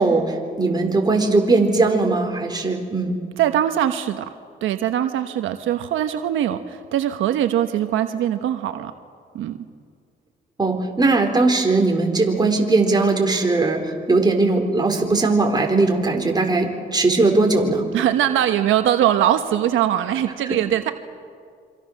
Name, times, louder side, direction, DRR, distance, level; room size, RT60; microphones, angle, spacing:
voice 1, 0.0-3.1 10.6-17.9 20.5-20.6, right 3 dB, 20° right, 2 dB, 4.2 m, -19 dB
voice 2, 3.4-4.2 4.6-8.9 9.3-9.6 17.9-20.9, right 11 dB, 85° right, 8 dB, 1.1 m, -21 dB
27.0 x 25.5 x 6.6 m, 2.1 s
cardioid pair, 90°, 20 cm